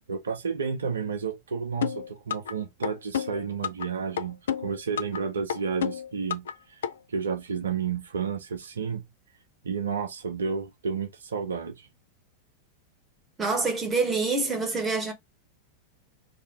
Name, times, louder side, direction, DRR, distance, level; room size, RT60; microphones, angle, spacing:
voice 1, 0.1-6.8 7.1-9.0 9.6-11.9, right 6 dB, 70° right, 0.5 m, -31 dB
sound 1, 1.8-2.5 2.8-3.9 4.2-5.2 5.5-6.5 6.8-6.9, left 8 dB, 65° left, 0.3 m, -29 dB
voice 2, 13.4-15.1, right 3 dB, 15° right, 1.0 m, -26 dB
2.7 x 2.4 x 4.2 m
figure-of-eight pair, 90°, 0 cm